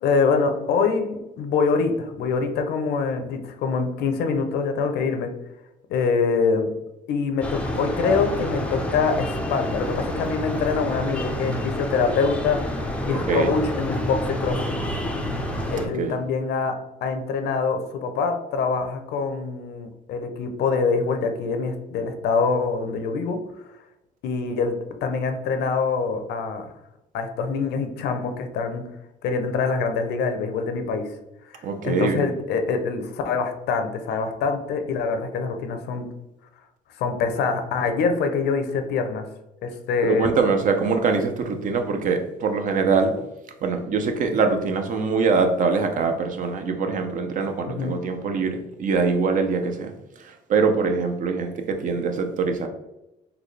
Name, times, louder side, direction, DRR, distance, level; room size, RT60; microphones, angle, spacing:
voice 1, 0.0-5.3 5.9-6.7 7.1-12.6 13.0-14.8 15.7-16.7 17.0-23.4 24.2-24.7 25.0-26.7 27.1-28.8 29.2-31.1 31.5-36.1 37.0-39.2 39.6-40.3 47.7-48.0, left 5 dB, 75° left, 6 dB, 0.6 m, -24 dB
sound 1, 7.4-15.9, left 1 dB, 5° left, 0.4 m, -28 dB
voice 2, 13.1-13.5 16.0-16.1 31.6-32.2 40.0-43.1 43.6-49.9 50.5-52.7, right 4 dB, 50° right, 5 dB, 0.6 m, -23 dB
4.0 x 2.2 x 3.2 m, 0.91 s
cardioid pair, 110°, 17 cm